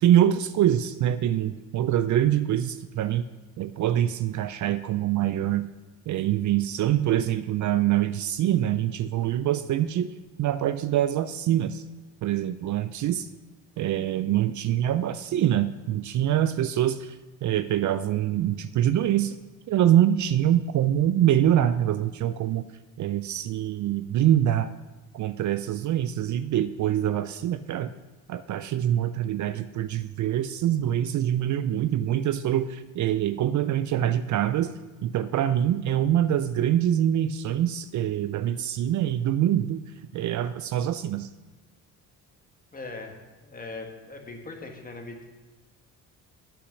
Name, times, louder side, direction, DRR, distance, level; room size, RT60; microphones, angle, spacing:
voice 1, 0.0-3.2 3.6-5.7 6.1-10.1 10.4-11.8 12.2-13.3 13.8-19.4 19.7-22.6 23.0-24.7 25.1-27.9 28.3-34.7 35.0-39.8 40.1-41.3, right 11 dB, 55° right, 13 dB, 0.4 m, -24 dB
voice 2, 42.7-43.2 43.4-45.2, left 3 dB, 25° left, 2 dB, 1.6 m, -40 dB
8.4 x 5.8 x 6.3 m, 1.2 s
cardioid pair, 90°, 36 cm